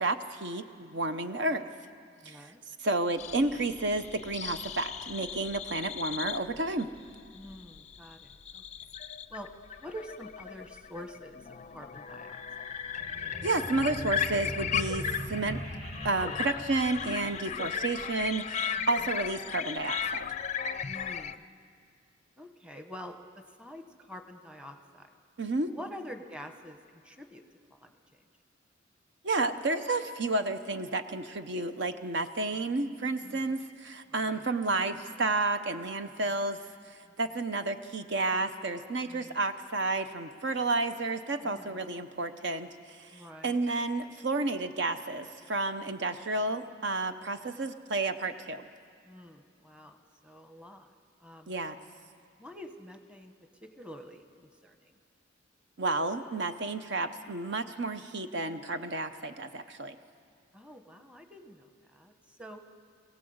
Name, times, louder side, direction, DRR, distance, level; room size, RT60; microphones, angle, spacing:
voice 1, 0.0-1.6 2.2-2.5 2.8-6.9 13.4-15.6 16.0-20.3 25.4-25.7 29.2-36.6 36.9-48.6 51.5-51.8 55.8-60.0, right 2 dB, 60° right, 9 dB, 0.8 m, -31 dB
voice 2, 2.2-2.6 7.3-8.6 9.3-9.5 9.8-11.4 11.7-12.4 17.5-17.6 18.8-19.2 20.8-21.4 22.4-25.1 25.7-27.4 27.7-28.0 32.2-32.5 33.2-33.5 34.1-34.5 36.4-36.5 37.0-37.1 39.1-39.4 41.4-41.8 43.1-43.7 49.0-50.9 51.2-51.5 52.4-53.3 53.8-54.9 60.5-62.6, equal, 5° right, 5 dB, 1.1 m, -47 dB
sound 1, 3.2-21.4, left 7 dB, 35° left, 0.5 m, -36 dB
sound 2, 13.0-17.9, equal, 35° right, 1.6 m, -41 dB
24.0 x 17.0 x 7.9 m, 2.2 s
head